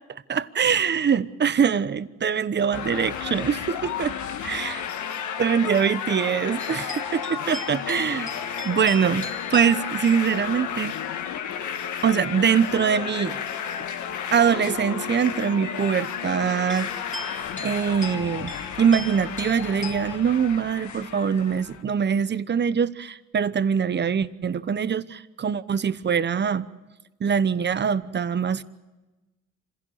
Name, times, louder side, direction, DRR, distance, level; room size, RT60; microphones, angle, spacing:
voice 1, 0.3-4.1 4.4-4.8 5.4-8.3 8.6-11.0 12.0-13.4 14.3-16.9 17.6-18.5 18.8-26.7 27.2-28.6, right 7 dB, 35° right, 15 dB, 0.9 m, -23 dB
sound 1, 2.7-21.8, left 8 dB, 75° left, 1.6 m, -32 dB
sound 2, 6.6-11.0 12.7-12.9 14.8-14.9 16.7-20.2, left 2 dB, 25° left, 3.2 m, -39 dB
26.0 x 16.5 x 8.6 m, 1.1 s
cardioid pair, 90°, 30 cm